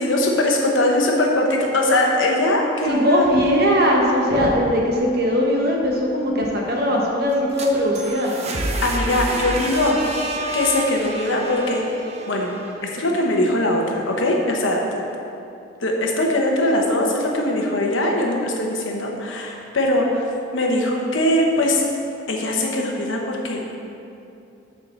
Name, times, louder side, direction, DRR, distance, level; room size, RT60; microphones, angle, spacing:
voice 1, 0.0-3.3 8.8-10.0 10.5-11.9 12.3-12.5 12.8-15.0 15.8-20.3 20.5-21.8 22.3-23.6, left 1 dB, 75° left, 0 dB, 1.1 m, -21 dB
voice 2, 2.8-8.3, equal, 50° right, -1 dB, 1.2 m, -20 dB
sound 1, 7.3-13.2, right 1 dB, 30° right, 0.7 m, -29 dB
6.8 x 4.7 x 6.8 m, 2.7 s
head